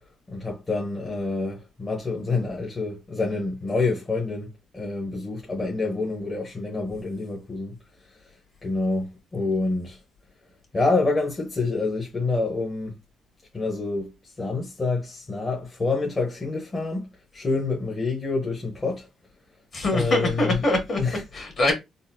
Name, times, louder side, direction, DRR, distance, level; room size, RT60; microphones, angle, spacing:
voice 1, 0.3-4.5 4.7-7.8 8.6-10.0 10.7-12.9 13.5-14.1 14.4-17.1 17.3-19.1 19.9-20.6 21.0-21.2, left 3 dB, 25° left, 0.9 m, -27 dB
voice 2, 19.7-21.0 21.3-21.7, left 2 dB, 50° left, 1.8 m, -23 dB
3.9 x 2.1 x 2.6 m
cardioid pair, 90°, 0 cm